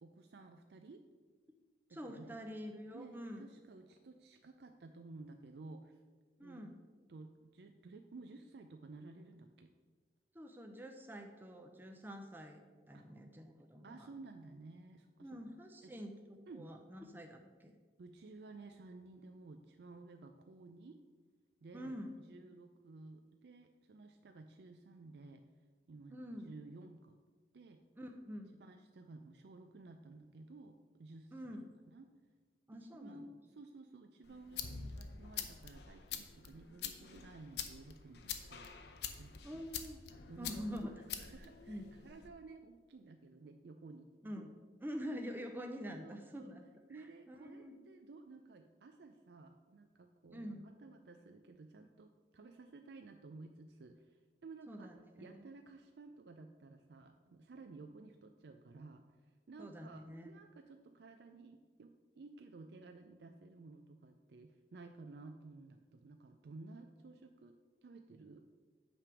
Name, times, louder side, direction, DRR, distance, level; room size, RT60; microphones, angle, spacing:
voice 1, 0.0-1.0 1.9-2.4 2.9-6.0 6.4-6.7 7.1-9.7 12.9-13.0 13.8-15.4 15.8-15.9 16.5-16.7 18.0-21.0 21.6-22.0 22.3-25.4 25.9-27.2 27.5-27.8 28.6-32.1 32.9-38.7 39.2-39.7 40.3-40.8 41.2-44.1 46.0-46.5 46.9-54.9 55.2-59.0 59.5-67.6 67.8-68.4, right 3 dB, 65° right, 6 dB, 0.4 m, -54 dB
voice 2, 1.9-3.4 6.4-6.8 10.3-12.6 12.9-14.1 15.2-17.8 21.7-22.2 26.1-26.6 28.0-28.6 31.3-31.7 32.7-33.2 39.4-40.0 40.4-41.0 41.7-41.8 44.2-44.5 44.8-46.6 46.9-47.8 50.3-50.7 54.7-55.4 59.6-60.3, equal, 10° right, 3 dB, 0.5 m, -46 dB
sound 1, 34.2-42.3, left 8 dB, 65° left, 0.6 m, -46 dB
8.8 x 3.4 x 6.0 m, 1.4 s
head